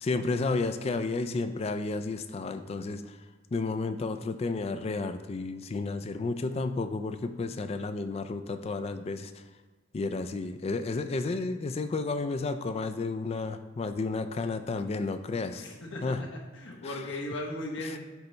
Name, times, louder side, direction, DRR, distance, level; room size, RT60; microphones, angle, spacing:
voice 1, 0.0-3.2 3.5-9.3 9.9-15.6 16.0-16.2, left 3 dB, 30° left, 9 dB, 0.3 m, -32 dB
voice 2, 15.5-18.0, left 1 dB, 65° left, -1 dB, 1.1 m, -37 dB
8.0 x 3.3 x 4.0 m, 1.3 s
head